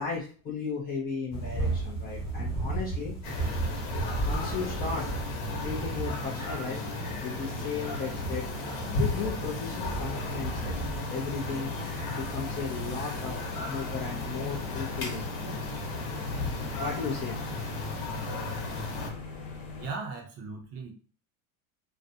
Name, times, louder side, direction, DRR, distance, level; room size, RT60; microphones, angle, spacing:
voice 1, 0.0-3.2 4.3-5.1 5.6-6.9 7.2-10.8 11.1-11.8 12.1-15.3 16.8-17.4, left 5 dB, 25° left, -3 dB, 0.4 m, -35 dB
thunder long tail, 1.3-18.2, right 2 dB, 5° left, 1.1 m, -37 dB
sound 1, 3.2-19.1, left 2 dB, 55° left, 1.0 m, -35 dB
sound 2, 10.1-19.9, left 3 dB, 75° left, 1.1 m, -41 dB
voice 2, 19.8-20.9, right 4 dB, 35° right, 2 dB, 0.5 m, -38 dB
2.5 x 2.1 x 2.6 m, 0.40 s
supercardioid pair, 140°, 44 cm